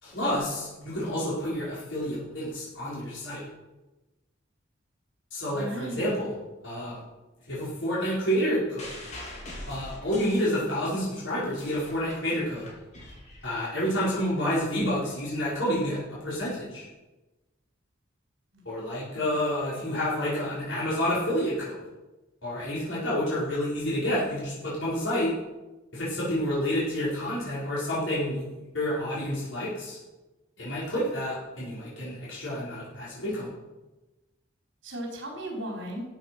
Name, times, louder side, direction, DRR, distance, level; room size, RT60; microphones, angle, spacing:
voice 1, 0.0-3.4 5.3-6.3 6.6-7.0 7.5-8.9 9.7-12.7 13.4-16.9 18.6-21.8 22.4-25.3 25.9-28.4 28.7-30.0 30.6-33.5, equal, 75° left, -8 dB, 4.9 m, -29 dB
voice 2, 5.5-6.1 18.5-18.6 19.1-19.2 34.8-36.0, right 1 dB, 70° right, 0 dB, 4.5 m, -36 dB
sound 1, 8.8-11.0 11.4-14.0 14.8-14.9, left 1 dB, 40° left, 3.6 m, -43 dB
13.5 x 8.2 x 6.1 m, 1.1 s
head